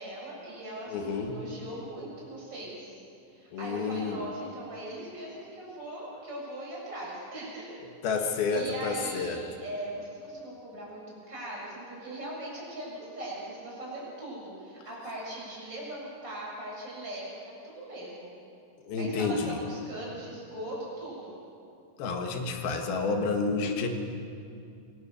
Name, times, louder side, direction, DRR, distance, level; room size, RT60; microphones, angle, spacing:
voice 1, 0.0-3.0 3.3-7.7 8.1-18.3 19.0-21.4, right 1 dB, 25° right, -5 dB, 7.6 m, -40 dB
voice 2, 0.9-1.4 3.5-4.2 8.0-9.4 18.9-19.6 22.0-23.9, left 4 dB, 75° left, 4 dB, 3.6 m, -29 dB
26.5 x 18.5 x 7.0 m, 2.5 s
omnidirectional pair, 4.4 m